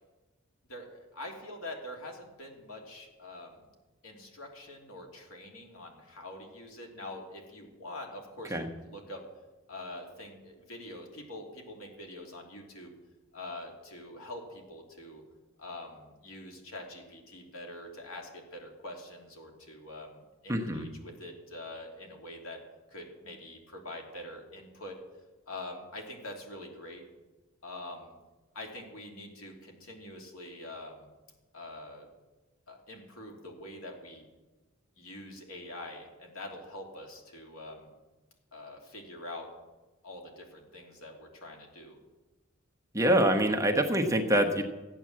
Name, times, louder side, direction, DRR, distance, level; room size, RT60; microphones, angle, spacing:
voice 1, 0.7-3.6 4.0-9.2 9.7-12.9 13.3-15.2 15.6-22.6 22.9-25.0 25.5-27.0 27.6-28.1 28.5-31.1 31.5-32.1 32.7-34.2 35.0-37.9 38.5-39.5 40.0-42.0, left 1 dB, 80° left, 1 dB, 3.0 m, -45 dB
voice 2, 20.5-20.8 42.9-44.6, right 1 dB, 15° right, 4 dB, 1.0 m, -25 dB
14.5 x 9.0 x 7.4 m, 1.2 s
head